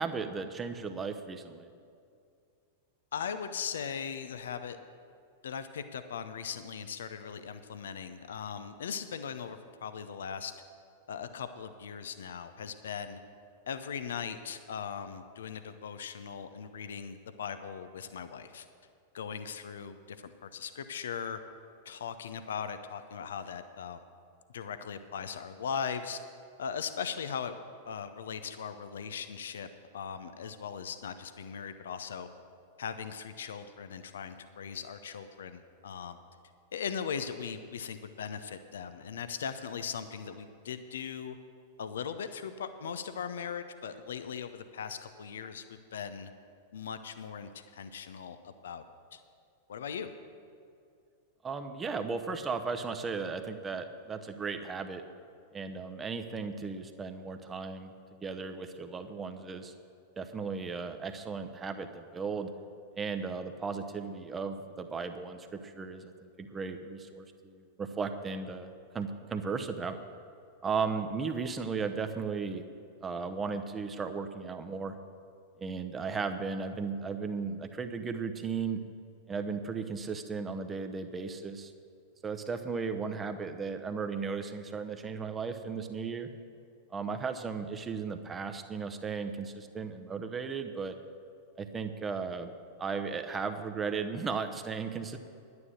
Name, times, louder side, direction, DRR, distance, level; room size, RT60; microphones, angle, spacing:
voice 1, 0.0-1.7 51.4-55.0 55.5-59.7 60.2-62.5 62.9-70.0 70.6-72.6 73.0-74.9 75.6-78.8 79.3-81.7 82.2-86.3 86.9-91.0 91.6-92.5 92.8-95.2, right 5 dB, 20° right, 7 dB, 0.9 m, -36 dB
voice 2, 3.1-4.8 5.4-10.5 11.1-13.2 13.7-18.7 19.1-21.4 21.8-24.0 24.5-26.2 26.6-27.5 27.9-29.7 29.9-32.3 32.8-36.2 36.7-41.4 41.8-46.3 46.7-48.8 49.1-49.2 49.7-50.1, left 7 dB, 65° left, 10 dB, 0.6 m, -39 dB
11.0 x 9.6 x 6.4 m, 2.4 s
figure-of-eight pair, 95°, 0 cm